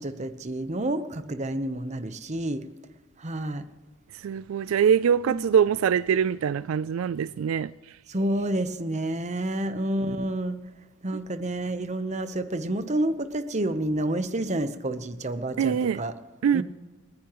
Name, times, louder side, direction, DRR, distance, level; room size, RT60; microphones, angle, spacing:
voice 1, 0.0-2.6 3.2-3.7 5.2-5.5 8.1-10.6 11.0-16.1 16.5-16.6, right 1 dB, 35° right, 0.9 m, -29 dB
voice 2, 4.1-7.7 15.6-16.0 16.4-16.6, right 7 dB, 75° right, 0.3 m, -23 dB
29.0 x 9.8 x 3.1 m
head